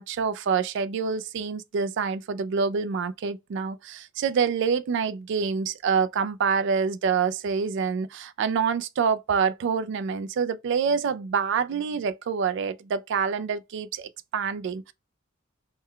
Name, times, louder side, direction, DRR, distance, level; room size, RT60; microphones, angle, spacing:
voice 1, 0.0-14.9, right 6 dB, 65° right, 0.3 m, -26 dB
3.2 x 2.1 x 3.6 m
head